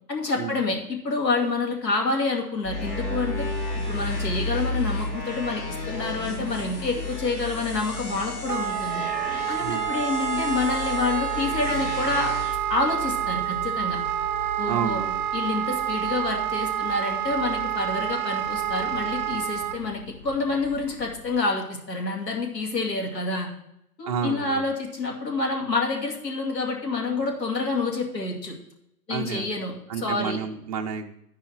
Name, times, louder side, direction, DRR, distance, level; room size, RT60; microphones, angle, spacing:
voice 1, 0.1-3.4 3.9-9.0 9.5-12.3 12.7-14.0 14.6-15.0 15.3-23.5 24.0-28.5 29.1-30.4, left 3 dB, 85° left, 0 dB, 2.6 m, -28 dB
sound 1, 2.6-21.4, left 2 dB, 35° left, 0.6 m, -36 dB
sound 2, 2.7-12.6, left 2 dB, 20° left, 0.9 m, -36 dB
Wind instrument woodwind instrument, 8.5-19.8, right 11 dB, 60° right, 0.7 m, -28 dB
voice 2, 9.6-10.0 14.7-15.2 24.1-24.7 29.1-29.5 29.9-31.2, right 7 dB, 25° right, 2 dB, 0.5 m, -30 dB
12.5 x 4.7 x 4.5 m, 0.80 s
hypercardioid pair, 140°, 48 cm